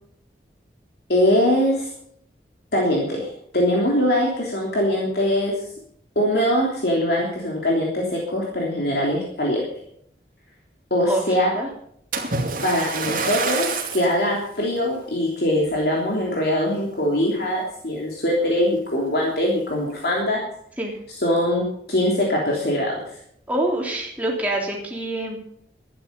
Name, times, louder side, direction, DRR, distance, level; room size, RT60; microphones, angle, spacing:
voice 1, 1.1-1.9 2.7-5.5 6.1-9.6 10.9-11.5 12.6-20.4 21.2-23.0, left 1 dB, 65° left, -2 dB, 3.3 m, -22 dB
Splash splatter, 12.1-14.2 14.8-15.0 15.6-15.7, right 4 dB, 50° right, 2.5 m, -27 dB
voice 2, 23.5-25.4, right 1 dB, 10° right, -2 dB, 3.3 m, -25 dB
12.5 x 10.5 x 6.9 m, 0.68 s
head